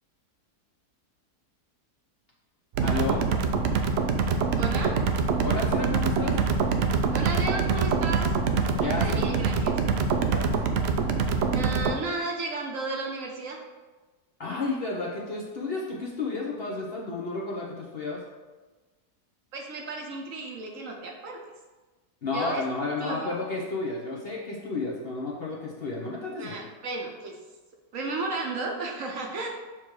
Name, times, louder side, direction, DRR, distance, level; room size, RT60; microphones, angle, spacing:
sound 1, 2.7-11.9, right 5 dB, 75° right, 0.5 m, -25 dB
voice 1, 2.8-3.2 5.4-6.4 8.8-9.2 10.3-10.6 14.4-18.2 22.2-26.7, left 3 dB, 45° left, -3 dB, 0.9 m, -32 dB
voice 2, 4.6-4.9 7.1-8.3 8.8-9.8 11.5-13.6 19.5-21.4 22.3-22.6 23.0-23.3 26.4-27.4 27.9-29.5, right 3 dB, 60° right, 1 dB, 1.0 m, -33 dB
7.2 x 3.1 x 4.7 m, 1.2 s
omnidirectional pair, 1.7 m